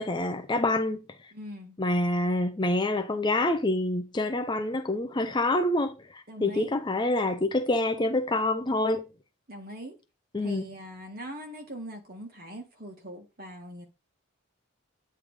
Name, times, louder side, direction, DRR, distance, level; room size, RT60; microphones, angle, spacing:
voice 1, 0.0-1.3 1.8-9.1 10.3-10.7, left 2 dB, 20° left, 0.5 m, -27 dB
voice 2, 1.3-1.8 6.3-6.8 9.5-10.0 10.4-13.9, equal, 45° right, 1.8 m, -41 dB
8.6 x 3.4 x 4.9 m
head